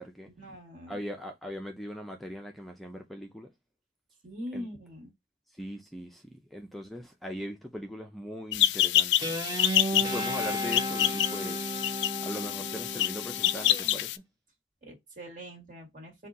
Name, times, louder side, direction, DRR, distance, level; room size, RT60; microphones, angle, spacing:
voice 1, 0.3-1.0 4.2-5.1 14.8-16.3, equal, 50° right, 1.6 m, -42 dB
voice 2, 0.9-3.5 4.5-4.7 5.6-9.2 9.9-11.6 12.2-14.1, equal, ahead, 0.4 m, -40 dB
sound 1, 8.5-14.2, left 13 dB, 70° left, 0.3 m, -27 dB
Guitar, 9.2-13.9, equal, 20° right, 0.9 m, -34 dB
4.1 x 2.3 x 3.7 m
head